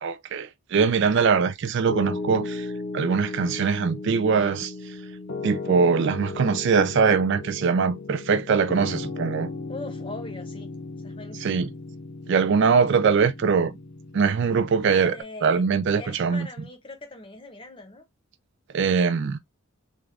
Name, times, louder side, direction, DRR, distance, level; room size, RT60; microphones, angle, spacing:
voice 1, 0.0-5.0 5.4-9.5 11.4-11.7 12.3-13.7 14.1-15.2 15.4-16.5 18.7-19.4, right 5 dB, 55° right, 0.3 m, -22 dB
Piano, 1.9-15.2, left 3 dB, 55° left, 0.6 m, -36 dB
voice 2, 9.7-10.7 11.0-11.7 14.9-15.7 16.0-18.0, left 2 dB, 25° left, 0.8 m, -41 dB
3.7 x 2.4 x 3.2 m
head